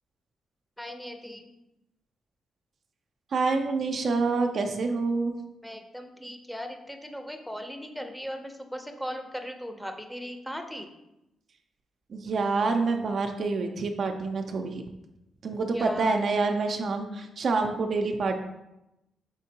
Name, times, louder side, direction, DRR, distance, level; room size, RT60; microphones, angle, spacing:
voice 1, 0.8-1.5 5.6-10.9 15.7-16.2, equal, ahead, 5 dB, 0.6 m, -38 dB
voice 2, 3.3-5.4 12.1-14.8 15.4-18.3, right 3 dB, 60° right, 4 dB, 0.4 m, -27 dB
5.1 x 3.6 x 2.8 m, 0.90 s
cardioid pair, 70°, 0 cm